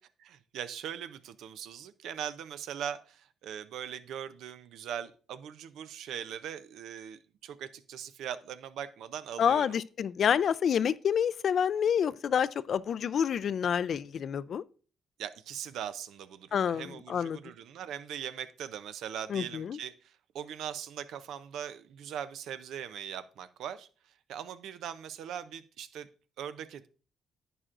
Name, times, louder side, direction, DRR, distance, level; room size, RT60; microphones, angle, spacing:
voice 1, 0.2-9.7 15.2-26.1 26.4-26.9, right 9 dB, 80° right, 0.6 m, -40 dB
voice 2, 9.4-14.6 16.5-17.4 19.3-19.8, left 8 dB, 60° left, 0.4 m, -28 dB
11.0 x 8.9 x 2.5 m
cardioid pair, 90°, 0 cm